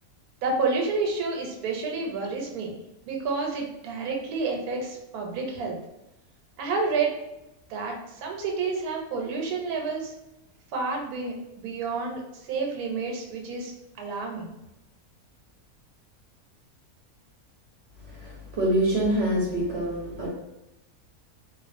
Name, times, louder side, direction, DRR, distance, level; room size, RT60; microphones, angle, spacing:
voice 1, 0.4-2.7 3.1-5.8 6.6-7.1 7.7-10.1 10.7-14.5, right 4 dB, 90° right, 1 dB, 1.1 m, -29 dB
voice 2, 18.1-20.3, right 1 dB, 60° right, -4 dB, 0.7 m, -26 dB
2.4 x 2.3 x 2.5 m, 0.92 s
omnidirectional pair, 1.5 m